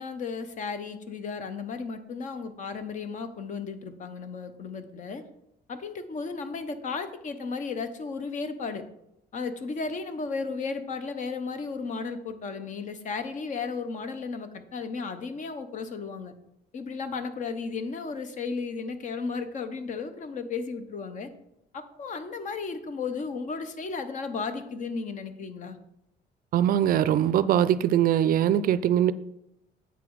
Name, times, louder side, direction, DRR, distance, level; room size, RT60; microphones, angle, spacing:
voice 1, 0.0-5.2 5.7-8.8 9.3-16.3 16.7-21.3 21.7-25.8, left 4 dB, 45° left, 10 dB, 0.9 m, -34 dB
voice 2, 26.5-29.1, right 10 dB, 55° right, 15 dB, 0.4 m, -22 dB
8.3 x 5.9 x 4.7 m, 0.82 s
cardioid pair, 135°, 18 cm